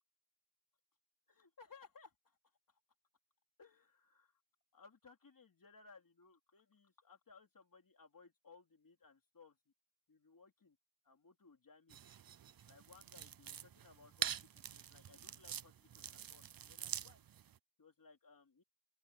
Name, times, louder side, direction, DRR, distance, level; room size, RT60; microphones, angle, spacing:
voice 1, 1.3-2.4 2.7-2.8 3.6-4.3 4.7-9.6 10.1-10.8 11.0-12.0 12.6-17.2 17.8-18.6, left 4 dB, 75° left, 3.2 m, -63 dB
sound 1, 11.9-17.6, right 9 dB, 90° right, 0.6 m, -46 dB
open air
wide cardioid pair, 60°, 34 cm